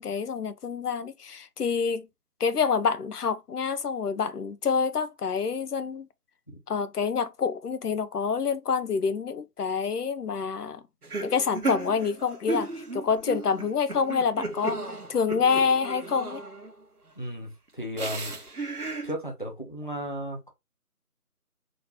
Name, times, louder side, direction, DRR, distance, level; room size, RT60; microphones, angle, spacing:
voice 1, 0.0-2.1 2.4-6.1 6.7-10.8 11.2-14.8 15.1-16.4, left 5 dB, 75° left, 0.7 m, -27 dB
sound 1, 11.0-16.8 18.0-19.1, right 3 dB, 75° right, 1.3 m, -35 dB
voice 2, 17.2-18.4 19.0-20.5, equal, 30° left, 0.8 m, -35 dB
3.8 x 3.0 x 3.1 m
figure-of-eight pair, 175°, 46 cm